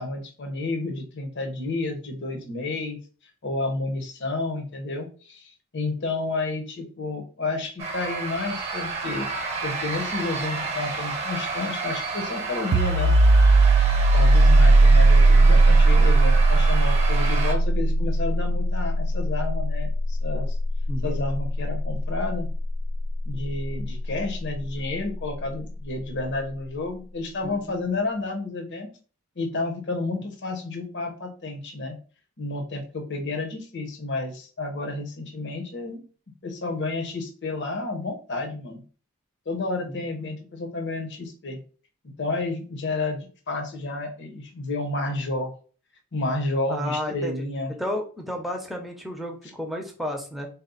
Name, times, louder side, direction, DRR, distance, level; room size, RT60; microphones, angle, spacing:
voice 1, 0.0-3.0 3.4-9.3 9.6-13.2 14.1-20.6 21.0-22.5 23.2-28.9 29.4-32.0 32.4-36.1 36.4-38.8 39.5-41.6 42.0-45.5 46.1-47.7, left 2 dB, 50° left, 3 dB, 0.8 m, -30 dB
sound 1, 7.8-17.5, right 4 dB, 30° right, 0.8 m, -31 dB
sound 2, 12.7-24.1, right 2 dB, 60° right, 0.4 m, -18 dB
voice 2, 20.9-21.2 27.4-27.7 39.9-40.0 46.7-47.3 47.8-50.5, equal, ahead, 1 dB, 0.6 m, -32 dB
4.1 x 2.1 x 3.9 m, 0.38 s
head